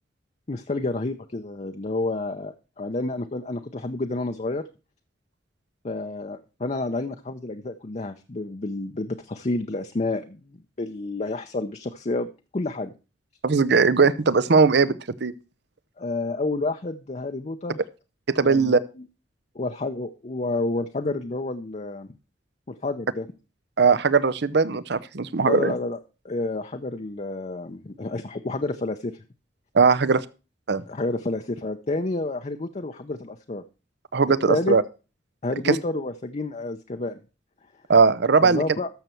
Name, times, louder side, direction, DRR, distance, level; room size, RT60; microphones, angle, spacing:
voice 1, 0.5-4.6 5.8-12.9 16.0-17.8 18.4-18.8 19.5-22.1 22.7-23.3 25.4-26.0 26.2-29.2 30.9-33.6 34.5-34.8 35.4-37.2 38.4-38.9, left 2 dB, 35° left, 6 dB, 0.6 m, -29 dB
voice 2, 13.4-15.3 18.3-18.8 23.8-25.7 29.7-30.2 30.7-30.8 34.1-34.8 35.7-35.8 37.9-38.6, right 4 dB, 60° right, 18 dB, 0.7 m, -19 dB
13.0 x 6.7 x 4.4 m, 0.32 s
head